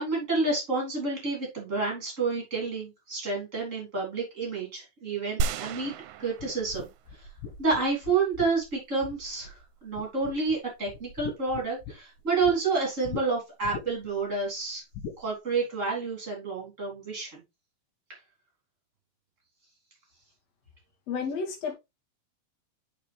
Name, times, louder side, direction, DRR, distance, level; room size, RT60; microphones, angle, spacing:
voice 1, 0.0-6.9 7.2-7.3 7.6-14.8 15.2-17.4 18.1-18.2, right 4 dB, 20° right, 3.1 m, -29 dB
sound 1, 5.4-7.2 7.7-7.8, right 5 dB, 85° right, 2.3 m, -33 dB
sound 2, 6.4-9.6 9.9-10.6 10.9-12.6 13.0-13.2 13.6-14.1 14.9-15.2, left 5 dB, 70° left, 2.9 m, -40 dB
voice 2, 21.1-21.7, left 5 dB, 50° left, 3.0 m, -31 dB
6.5 x 6.1 x 3.3 m
omnidirectional pair, 3.9 m